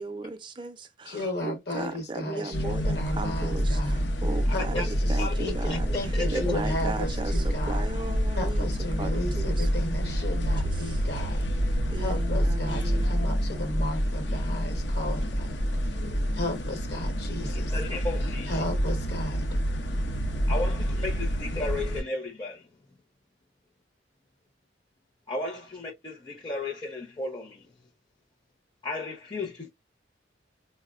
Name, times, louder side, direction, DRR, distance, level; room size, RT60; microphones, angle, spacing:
voice 1, 0.0-8.7 9.0-10.1 10.6-11.0 11.9-13.1, right 3 dB, 25° right, 0.4 m, -37 dB
voice 2, 1.1-4.1 4.5-7.8 8.4-16.0 16.3-17.8 18.5-19.5, left 1 dB, 60° left, 1.0 m, -34 dB
sound 1, 2.5-22.0, equal, 75° left, 0.6 m, -28 dB
sound 2, 7.3-13.2, left 1 dB, 85° right, 0.5 m, -35 dB
voice 3, 17.5-18.6 20.5-22.7 25.3-27.7 28.8-29.7, left 2 dB, 25° left, 0.6 m, -34 dB
4.0 x 2.0 x 2.3 m
head